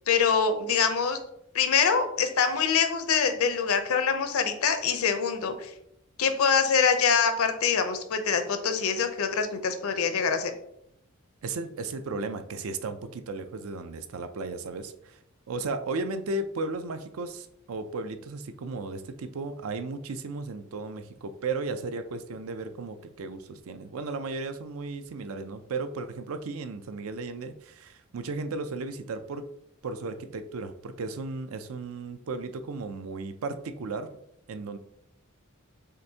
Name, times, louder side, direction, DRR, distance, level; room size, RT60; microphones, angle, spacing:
voice 1, 0.1-1.2 1.5-5.7 6.2-10.5, left 6 dB, 75° left, 8 dB, 0.6 m, -24 dB
voice 2, 11.4-15.2 15.5-29.4 29.8-34.1 34.5-34.8, right 3 dB, 65° right, 9 dB, 0.4 m, -35 dB
6.5 x 2.6 x 2.7 m, 0.76 s
head